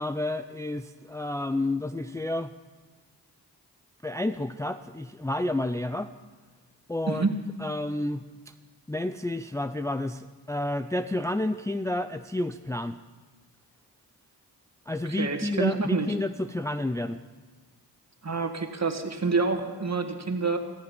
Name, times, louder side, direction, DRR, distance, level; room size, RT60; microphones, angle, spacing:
voice 1, 0.0-2.5 4.0-6.1 6.9-7.3 7.6-8.5 8.9-13.0 14.9-17.2, left 1 dB, 10° left, 9 dB, 0.5 m, -30 dB
voice 2, 7.1-7.4 15.1-16.1 18.2-20.6, right 4 dB, 40° right, 6 dB, 1.8 m, -27 dB
15.0 x 14.0 x 5.4 m, 1.3 s
cardioid pair, 45°, 42 cm